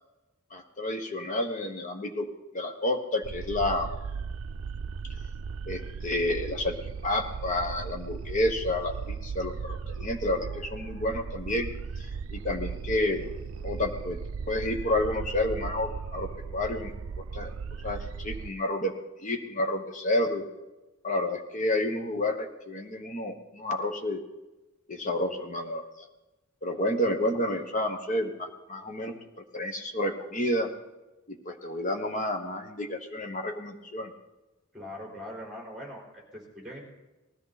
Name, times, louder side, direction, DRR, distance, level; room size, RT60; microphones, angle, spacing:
voice 1, 0.5-2.3 2.5-3.9 5.7-6.7 7.0-11.7 12.3-13.3 13.6-14.2 14.5-17.5 17.8-18.9 19.2-20.4 21.0-24.2 24.9-25.8 26.6-29.1 29.5-30.7 31.3-34.1, left 1 dB, 40° left, 6 dB, 1.1 m, -30 dB
sound 1, 3.2-18.5, right 5 dB, 85° right, 0.5 m, -37 dB
voice 2, 34.7-36.8, left 1 dB, ahead, -2 dB, 4.2 m, -41 dB
19.0 x 13.5 x 4.1 m, 1.1 s
head